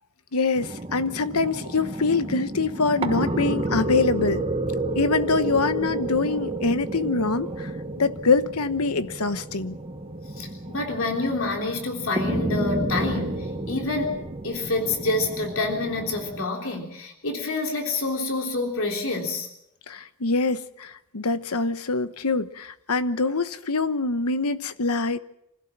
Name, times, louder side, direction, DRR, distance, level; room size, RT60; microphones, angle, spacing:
voice 1, 0.3-4.5 4.9-7.7 8.0-9.8 19.9-25.2, left 3 dB, 85° left, 1.1 m, -24 dB
sound 1, 0.6-16.4, right 1 dB, 25° right, 1.2 m, -31 dB
voice 2, 10.4-19.5, left 2 dB, 65° left, 3.6 m, -28 dB
26.0 x 16.0 x 7.4 m
head